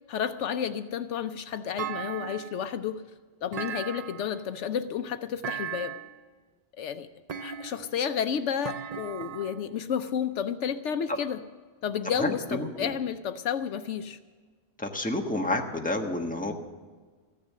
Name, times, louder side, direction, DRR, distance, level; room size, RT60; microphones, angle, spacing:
voice 1, 0.1-3.0 3.4-5.9 6.8-7.1 7.4-11.4 11.8-14.2, left 8 dB, 75° left, 10 dB, 0.9 m, -31 dB
Thump thud, 1.8-2.7 3.5-4.4 5.4-6.2 7.3-8.0 8.6-9.7, right 9 dB, 55° right, 0.4 m, -37 dB
voice 2, 12.2-12.9 14.8-16.5, left 1 dB, 5° left, 2 dB, 1.3 m, -30 dB
15.0 x 10.5 x 7.4 m, 1.5 s
omnidirectional pair, 1.3 m